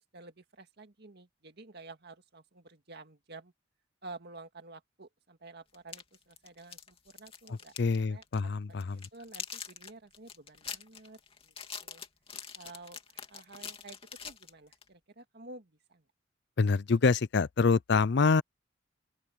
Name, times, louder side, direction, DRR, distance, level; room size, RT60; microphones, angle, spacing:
voice 1, 0.1-3.5 4.0-7.7 8.1-8.5 8.9-11.5 11.8-12.0 12.6-14.0 14.2-16.0, right 3 dB, 60° right, 2.1 m, -51 dB
sound 1, 5.7-8.0 8.2-8.4 8.8-14.9, left 6 dB, 30° left, 2.7 m, -44 dB
voice 2, 7.5-9.1 16.6-18.4, left 4 dB, 65° left, 0.5 m, -26 dB
open air
head